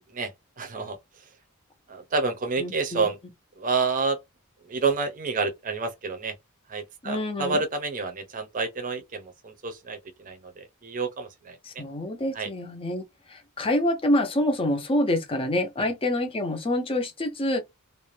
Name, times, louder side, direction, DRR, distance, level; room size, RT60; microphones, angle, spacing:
voice 1, 0.6-1.0 1.9-3.2 3.6-4.2 4.7-6.3 6.7-11.8 12.3-12.5 15.8-15.9, right 4 dB, 40° right, 0.6 m, -29 dB
voice 2, 2.6-3.1 7.0-7.6 11.6-13.0 13.3-17.6, left 1 dB, 25° left, 0.5 m, -26 dB
2.5 x 2.1 x 3.1 m
head